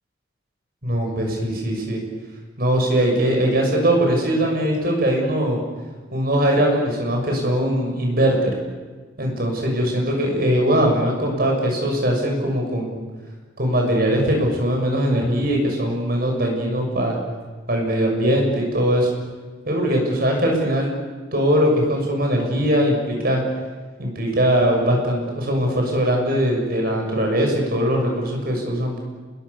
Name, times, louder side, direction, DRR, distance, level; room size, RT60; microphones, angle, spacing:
voice 1, 0.8-2.0 2.6-5.6 6.1-8.5 9.2-13.0 13.6-17.2 17.7-19.1 19.7-21.0 21.3-23.4 24.0-29.0, equal, 55° right, 1 dB, 6.9 m, -21 dB
28.5 x 21.5 x 7.0 m, 1.4 s
head